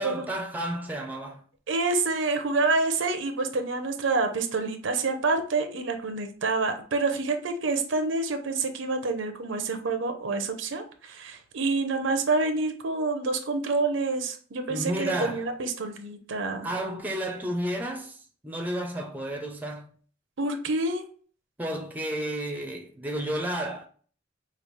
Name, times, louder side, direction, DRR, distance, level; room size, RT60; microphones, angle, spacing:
voice 1, 0.0-1.4 14.7-15.5 16.6-18.2 18.4-19.9 21.6-23.9, right 1 dB, 10° right, 0.6 m, -31 dB
voice 2, 1.7-16.7 20.4-21.0, right 3 dB, 75° right, 0.6 m, -27 dB
5.0 x 2.4 x 3.1 m
head